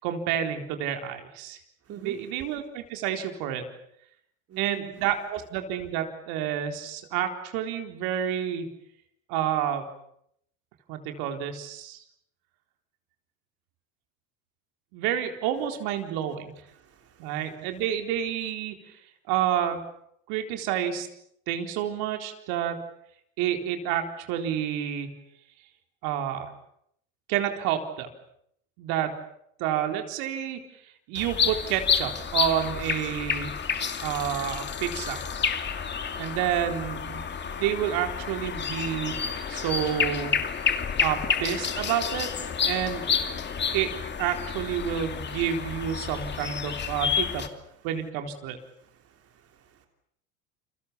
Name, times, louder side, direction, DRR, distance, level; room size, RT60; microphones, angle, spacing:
voice 1, 0.0-1.6 1.9-3.6 4.6-8.7 9.3-9.8 10.9-12.0 14.9-16.5 17.2-19.0 19.3-19.8 20.3-21.1 21.5-22.8 23.4-25.1 26.0-26.5 27.3-28.1 28.8-29.1 29.6-30.6 31.1-33.6 34.0-35.2 36.2-39.2 39.5-40.3 41.0-42.3 42.7-43.0 43.7-43.9 44.2-47.4 47.8-48.6, right 10 dB, 65° right, 5 dB, 4.2 m, -29 dB
voice 2, 1.9-2.2 4.5-4.9 16.7-17.4 46.8-46.9 48.8-49.9, right 8 dB, 35° right, 5 dB, 3.2 m, -44 dB
sound 1, 31.2-47.5, left 7 dB, 25° left, 2.6 m, -30 dB
29.5 x 24.0 x 7.1 m, 0.72 s
supercardioid pair, 115°, 40 cm